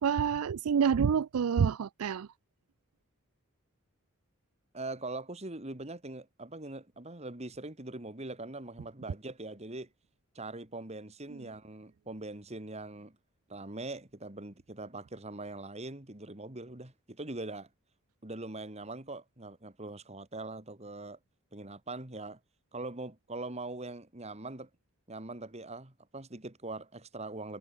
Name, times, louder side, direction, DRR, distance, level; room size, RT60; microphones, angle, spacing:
voice 1, 0.0-2.3, right 7 dB, 85° right, 0.4 m, -27 dB
voice 2, 4.7-9.9 10.3-13.2 13.5-17.7 18.2-21.2 21.5-22.4 22.7-24.7 25.1-27.6, right 2 dB, 30° right, 2.4 m, -42 dB
head